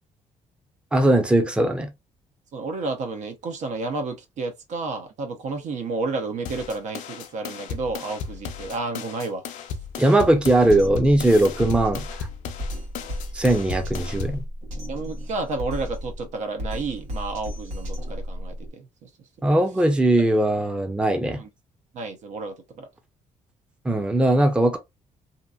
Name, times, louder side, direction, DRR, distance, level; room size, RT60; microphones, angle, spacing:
voice 1, 0.9-1.9 10.0-12.3 13.3-14.4 19.4-21.4 23.8-24.8, right 1 dB, 10° right, 0.5 m, -20 dB
voice 2, 2.5-9.4 10.2-10.3 14.9-19.1 21.3-21.5 21.9-22.9, right 3 dB, 75° right, 0.8 m, -31 dB
sound 1, 6.5-14.5, left 6 dB, 90° left, 0.5 m, -35 dB
Drum kit, 10.7-18.7, equal, 90° right, 1.3 m, -34 dB
2.8 x 2.5 x 2.3 m
cardioid pair, 110°, 13 cm